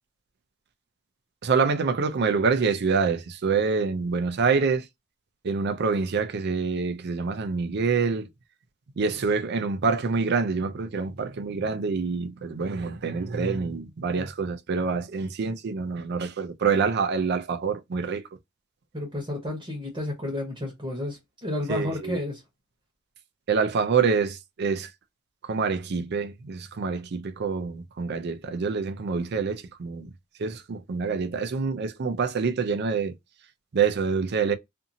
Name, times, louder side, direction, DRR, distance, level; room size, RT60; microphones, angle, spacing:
voice 1, 1.4-4.9 5.4-8.3 9.0-18.2 21.7-22.2 23.5-24.9 25.4-30.1 30.4-33.1 33.7-34.5, right 5 dB, 55° right, 0.4 m, -26 dB
voice 2, 18.9-22.4, left 1 dB, 25° right, 1.0 m, -31 dB
2.6 x 2.5 x 2.7 m
head